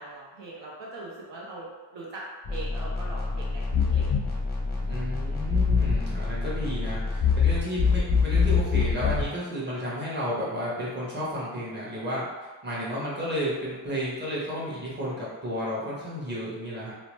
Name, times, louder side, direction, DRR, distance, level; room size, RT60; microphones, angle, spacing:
voice 1, 0.0-2.2 2.5-3.6 3.9-4.3, right 2 dB, 65° right, -4 dB, 0.7 m, -41 dB
sound 1, 2.5-9.3, left 5 dB, 20° left, 0.6 m, -25 dB
voice 2, 4.8-12.2 12.6-16.9, equal, 20° right, -7 dB, 1.1 m, -32 dB
2.8 x 2.0 x 3.0 m, 1.3 s
cardioid pair, 90°, 47 cm